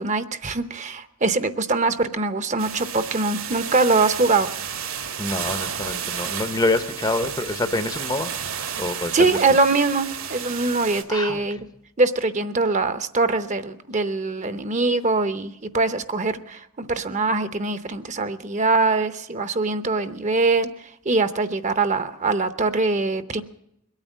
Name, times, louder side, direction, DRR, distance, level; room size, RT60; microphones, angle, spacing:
voice 1, 0.0-4.5 9.1-11.6 12.0-23.4, right 3 dB, 35° right, 12 dB, 0.7 m, -23 dB
sound 1, 2.6-11.0, right 8 dB, 70° right, 1.5 m, -32 dB
voice 2, 5.2-8.3 8.8-9.3 11.1-11.4, left 2 dB, 20° left, 11 dB, 0.7 m, -26 dB
22.0 x 9.0 x 7.3 m, 0.80 s
head